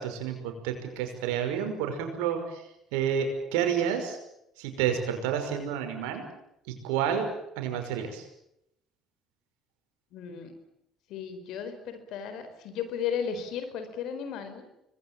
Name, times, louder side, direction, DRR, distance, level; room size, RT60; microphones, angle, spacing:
voice 1, 0.0-2.6 2.9-4.2 4.6-6.2 6.7-7.3 7.6-8.3, right 8 dB, 80° right, 6 dB, 5.7 m, -30 dB
voice 2, 10.1-10.5 11.1-14.6, left 7 dB, 70° left, 10 dB, 4.5 m, -35 dB
26.0 x 20.5 x 8.8 m, 0.82 s
hypercardioid pair, 60°, 0 cm